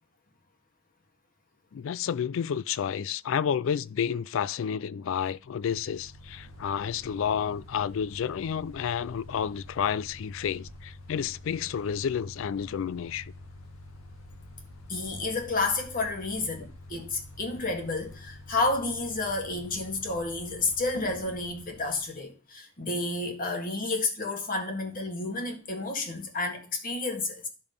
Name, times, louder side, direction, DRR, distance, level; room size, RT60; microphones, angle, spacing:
voice 1, 1.7-13.3, left 8 dB, 70° left, 0.4 m, -30 dB
Mechanical fan, 5.4-22.2, left 1 dB, 85° left, 2.0 m, -48 dB
voice 2, 14.9-27.5, left 3 dB, 45° left, 1.8 m, -31 dB
11.5 x 5.2 x 5.2 m
head